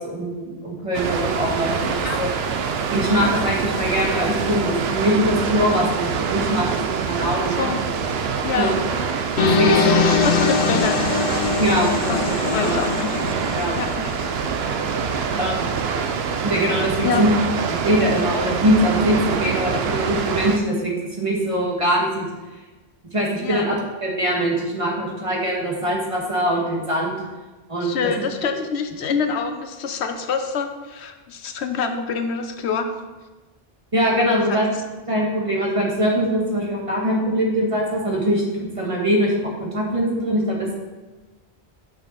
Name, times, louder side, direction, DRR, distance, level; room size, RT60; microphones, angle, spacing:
voice 1, 0.0-2.3 2.9-7.7 8.6-8.7 9.4-10.0 11.6-12.3 12.6-12.8 13.5-13.8 15.4-15.7 16.4-17.3 17.7-22.3 23.1-23.7 24.0-27.2 27.7-28.0 33.9-34.7 35.1-40.7, equal, 30° right, -3 dB, 1.7 m, -22 dB
Water, 0.9-20.6, right 6 dB, 70° right, 0.8 m, -25 dB
voice 2, 8.4-8.8 9.7-11.1 12.1-12.2 12.5-13.2 13.8-14.1 16.0-16.1 17.0-17.2 23.4-23.7 27.8-32.9 34.3-34.6, left 5 dB, 90° left, 7 dB, 1.0 m, -26 dB
sound 1, 9.4-14.3, left 6 dB, 55° left, 0.6 m, -22 dB
8.8 x 5.7 x 4.1 m, 1.2 s
omnidirectional pair, 1.1 m